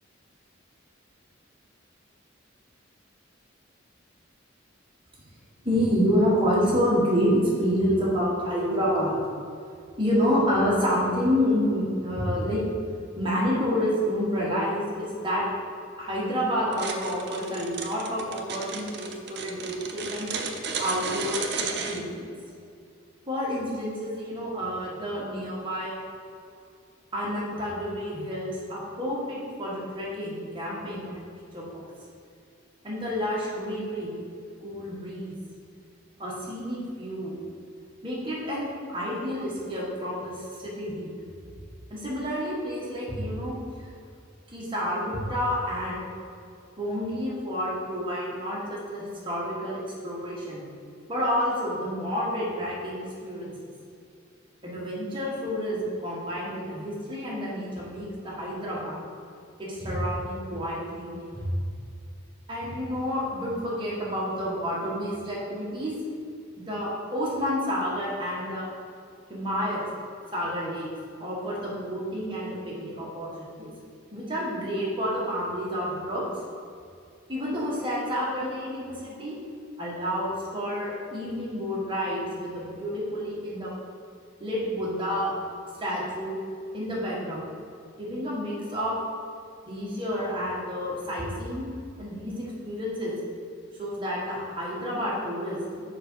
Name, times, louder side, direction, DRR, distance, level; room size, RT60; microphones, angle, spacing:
voice 1, 5.6-9.2 10.0-12.6 13.2-15.4 16.0-20.3 20.8-21.4 21.9-22.2 23.2-26.0 27.1-31.8 32.8-34.2 34.6-35.3 36.2-37.4 38.0-41.1 41.9-43.9 44.5-46.1 46.8-50.6 51.1-53.7 54.6-59.0 59.6-61.5 62.5-65.9 66.6-68.7 69.3-69.8 70.3-70.9 71.2-73.7 74.1-76.2 77.3-79.4 79.8-83.7 84.4-85.3 85.8-86.4 86.7-87.4 88.0-89.0 89.7-91.7 92.0-93.1 93.8-95.8, equal, 25° right, -5 dB, 1.6 m, -29 dB
sound 1, 16.7-22.0, right 5 dB, 55° right, 0.6 m, -33 dB
6.5 x 5.2 x 4.6 m, 2.4 s
head